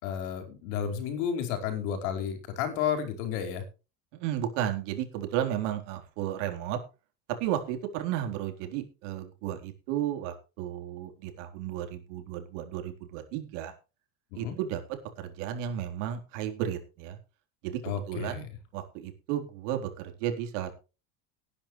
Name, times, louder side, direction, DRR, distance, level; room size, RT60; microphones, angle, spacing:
voice 1, 0.0-3.6 14.3-14.6 17.8-18.5, left 8 dB, 80° left, 6 dB, 4.8 m, -32 dB
voice 2, 4.1-6.8 7.4-13.7 14.4-14.8 15.2-17.2 17.6-18.5 18.7-20.7, right 11 dB, 85° right, 5 dB, 4.0 m, -33 dB
19.0 x 10.0 x 3.2 m, 0.31 s
cardioid pair, 170°, 36 cm